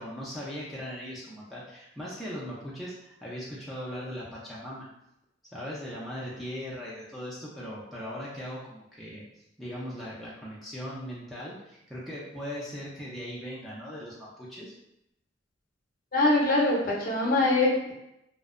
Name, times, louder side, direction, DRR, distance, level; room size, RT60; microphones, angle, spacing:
voice 1, 0.0-4.9 5.5-9.2 9.6-14.7, equal, ahead, -8 dB, 0.4 m, -39 dB
voice 2, 16.1-17.9, left 2 dB, 45° left, -3 dB, 0.6 m, -23 dB
2.5 x 2.0 x 2.4 m, 0.84 s
head